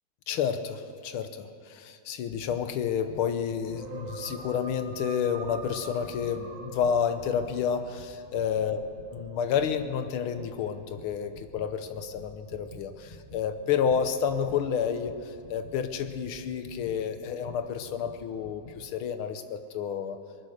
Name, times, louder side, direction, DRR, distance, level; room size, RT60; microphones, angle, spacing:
voice 1, 0.3-20.2, left 7 dB, 80° left, 9 dB, 1.7 m, -30 dB
sound 1, 2.5-5.0 5.4-18.9, left 1 dB, 35° left, 2.3 m, -49 dB
sound 2, 3.7-7.8, right 4 dB, 35° right, 2.3 m, -44 dB
20.0 x 11.0 x 6.4 m, 2.8 s
omnidirectional pair, 2.4 m